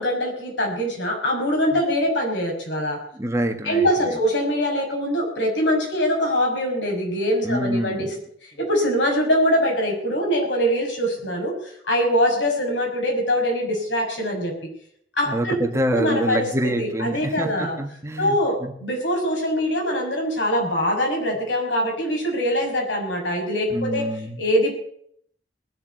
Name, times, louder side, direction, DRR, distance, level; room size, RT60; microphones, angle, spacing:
voice 1, 0.0-3.0 3.6-8.1 8.4-14.5 15.2-15.6 15.9-16.5 16.8-17.8 18.2-24.1 24.4-24.8, equal, 85° left, 1 dB, 6.0 m, -23 dB
voice 2, 3.1-4.2 7.4-8.1 15.3-18.4 18.6-18.7 23.7-24.4, right 1 dB, 15° right, 5 dB, 1.8 m, -26 dB
20.0 x 7.2 x 8.2 m, 0.66 s
head